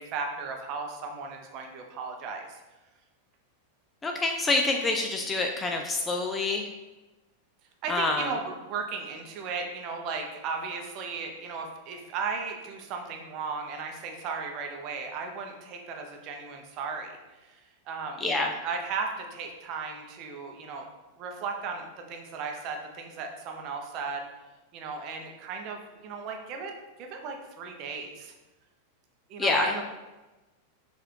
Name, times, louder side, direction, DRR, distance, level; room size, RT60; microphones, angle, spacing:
voice 1, 0.0-2.6 7.8-18.2 18.6-20.9 21.2-24.3 24.7-26.7 27.0-28.3 29.3-29.8, right 5 dB, 40° right, 3 dB, 0.6 m, -36 dB
voice 2, 4.0-6.6 7.9-8.3 18.2-18.5 29.4-29.8, left 3 dB, 15° left, 3 dB, 0.3 m, -26 dB
4.5 x 2.5 x 3.2 m, 1.1 s
figure-of-eight pair, 90°, 0 cm